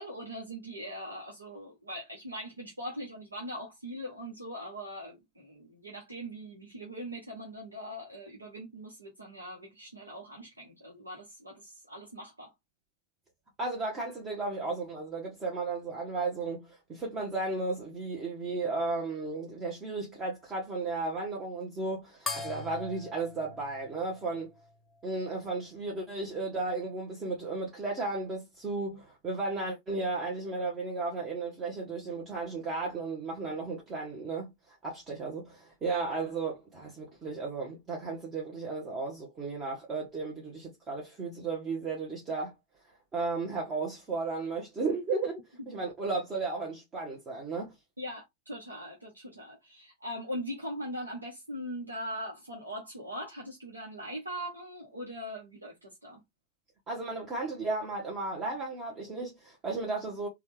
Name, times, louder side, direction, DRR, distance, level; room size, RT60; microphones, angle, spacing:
voice 1, 0.0-12.5 48.0-56.2, equal, 80° right, 0.9 m, -41 dB
voice 2, 13.6-24.5 25.0-42.5 43.1-47.7 56.9-60.3, right 3 dB, 20° right, 1.0 m, -34 dB
sound 1, 22.3-25.1, left 4 dB, 10° left, 0.9 m, -41 dB
3.3 x 2.3 x 3.1 m
figure-of-eight pair, 90°, 0 cm